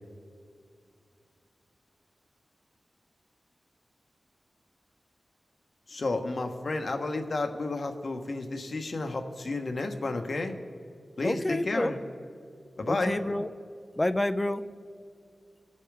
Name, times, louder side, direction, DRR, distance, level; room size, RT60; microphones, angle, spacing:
voice 1, 5.9-10.5 11.2-12.0 12.8-13.2, left 2 dB, 60° left, 5 dB, 1.3 m, -31 dB
voice 2, 11.2-11.9 12.9-13.5 14.0-14.7, left 1 dB, 20° left, 10 dB, 0.6 m, -28 dB
22.5 x 8.4 x 3.5 m, 2.4 s
wide cardioid pair, 65°, 0 cm